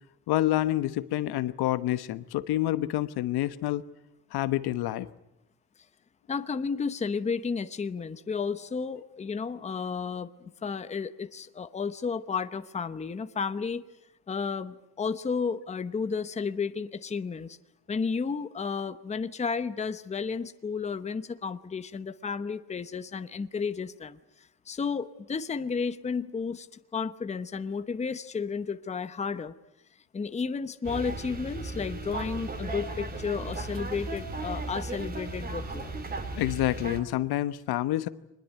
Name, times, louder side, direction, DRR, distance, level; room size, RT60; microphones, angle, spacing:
voice 1, 0.3-3.8 4.3-5.1 36.4-38.1, left 14 dB, 65° left, 13 dB, 1.1 m, -28 dB
voice 2, 6.3-13.8 14.3-17.6 17.9-26.7 26.9-29.5 30.1-36.0, left 5 dB, 15° left, 11 dB, 0.9 m, -32 dB
sound 1, 30.8-37.0, right 2 dB, 20° right, 3.0 m, -36 dB
24.5 x 21.0 x 9.3 m, 0.90 s
cardioid pair, 140°, 40 cm